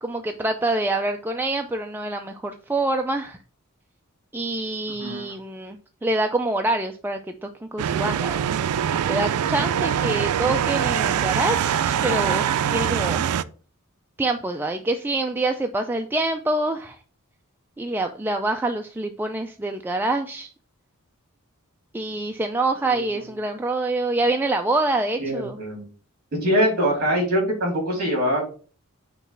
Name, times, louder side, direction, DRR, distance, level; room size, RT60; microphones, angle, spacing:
voice 1, 0.0-3.4 4.3-8.5 9.1-13.2 14.2-17.0 17.8-20.5 21.9-25.6, right 2 dB, 10° right, 4 dB, 0.3 m, -26 dB
sound 1, 7.8-13.4, right 9 dB, 85° right, 0.4 m, -23 dB
voice 2, 22.8-23.2 25.2-25.8 26.3-28.4, equal, 45° right, -1 dB, 3.2 m, -23 dB
6.0 x 3.0 x 5.5 m, 0.39 s
head